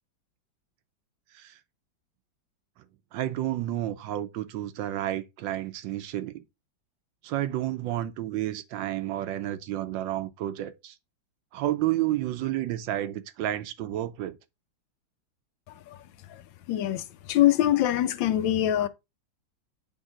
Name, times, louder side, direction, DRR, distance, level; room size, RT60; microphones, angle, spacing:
voice 1, 3.1-6.4 7.2-11.0 11.5-14.4, right 13 dB, 80° right, 1.3 m, -31 dB
voice 2, 16.7-18.9, left 12 dB, 80° left, 1.3 m, -23 dB
8.1 x 3.7 x 3.7 m
omnidirectional pair, 2.1 m